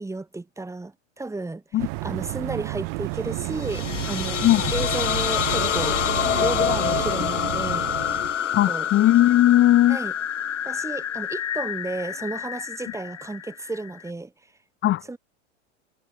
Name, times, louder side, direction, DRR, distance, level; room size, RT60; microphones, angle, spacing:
voice 1, 0.0-4.4 4.7-6.1 6.4-7.9 8.7-8.9 9.9-10.1 10.6-14.3 15.1-15.2, right 2 dB, 10° right, 4.7 m, -33 dB
sound 1, 1.8-8.3, right 38 dB, 55° right, 7.1 m, -31 dB
sound 2, 3.5-14.1, left 9 dB, 85° left, 4.6 m, -27 dB
voice 2, 8.5-10.0 14.8-15.0, left 14 dB, 35° left, 1.9 m, -18 dB
hypercardioid pair, 110°, 35 cm